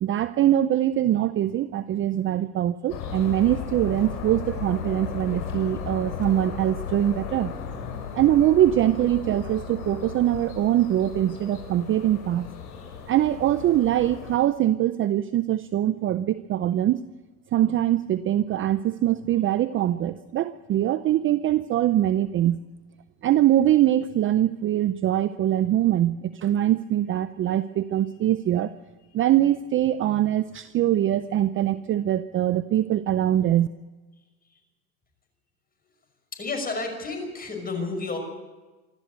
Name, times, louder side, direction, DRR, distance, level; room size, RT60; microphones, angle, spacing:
voice 1, 0.0-7.5 8.1-12.5 13.1-17.1 17.5-22.6 23.2-28.7 29.1-33.7, right 12 dB, 25° right, 14 dB, 0.6 m, -23 dB
sound 1, 2.9-14.4, left 7 dB, 70° left, 6.9 m, -36 dB
voice 2, 36.3-38.2, left 3 dB, 20° left, 3 dB, 5.9 m, -31 dB
26.0 x 12.5 x 8.1 m, 1.2 s
supercardioid pair, 115°, 46 cm